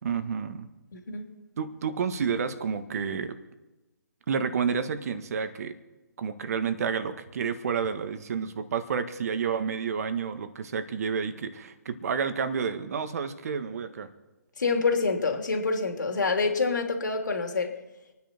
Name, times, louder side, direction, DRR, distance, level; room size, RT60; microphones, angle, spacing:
voice 1, 0.0-0.7 1.6-3.4 4.3-5.7 6.2-14.1, right 6 dB, 55° right, 10 dB, 1.7 m, -30 dB
voice 2, 0.9-1.2 14.6-17.7, left 4 dB, 75° left, 3 dB, 3.2 m, -26 dB
27.5 x 9.9 x 4.5 m, 1.1 s
hypercardioid pair, 145°, 10 cm